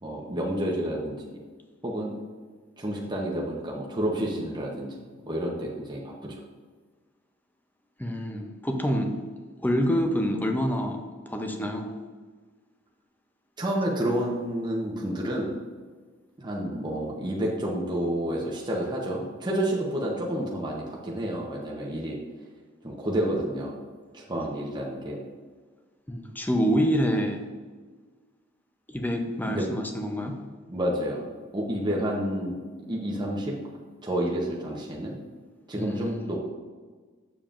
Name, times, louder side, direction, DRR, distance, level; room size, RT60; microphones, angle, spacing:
voice 1, 0.0-1.2 1.8-2.1 2.8-4.9 5.3-6.4 13.6-15.5 16.4-22.2 22.8-23.8 24.1-25.2 29.4-29.7 30.7-31.2 31.5-32.5 32.9-33.6 34.0-35.2 35.7-36.4, right 1 dB, 20° right, -3 dB, 0.8 m, -29 dB
voice 2, 8.0-9.1 9.6-11.9 26.1-27.4 28.9-30.4 35.8-36.3, equal, 10° left, 4 dB, 0.6 m, -27 dB
7.1 x 7.0 x 2.5 m, 1.5 s
head